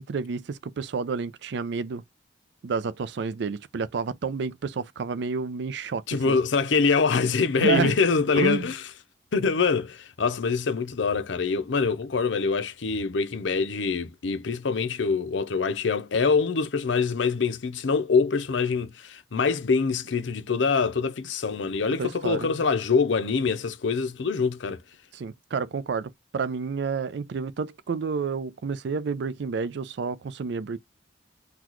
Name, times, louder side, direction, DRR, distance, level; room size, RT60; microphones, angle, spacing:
voice 1, 0.0-2.0 2.6-6.4 7.6-8.0 8.4-8.7 22.0-22.6 25.1-30.8, right 5 dB, 65° right, 0.4 m, -30 dB
voice 2, 6.1-8.8 9.3-24.8, left 5 dB, 80° left, 0.6 m, -24 dB
3.9 x 2.3 x 3.0 m
head